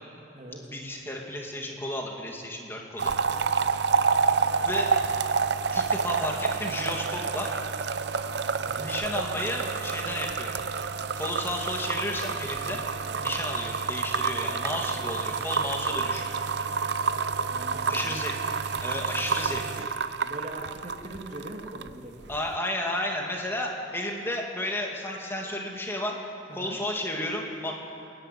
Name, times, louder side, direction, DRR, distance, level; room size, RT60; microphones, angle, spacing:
voice 1, 0.7-3.1 4.6-4.9 5.7-7.5 8.8-10.5 11.2-12.8 13.2-16.3 17.9-18.4 18.8-19.8 22.3-26.2 26.5-27.7, left 1 dB, 15° left, 0 dB, 2.4 m, -32 dB
sound 1, 3.0-21.9 22.2-22.6, right 5 dB, 65° right, 0.6 m, -29 dB
voice 2, 17.5-18.2 20.2-22.1 26.5-26.8, right 1 dB, 40° right, 1 dB, 2.4 m, -41 dB
30.0 x 11.0 x 9.3 m, 3.0 s
head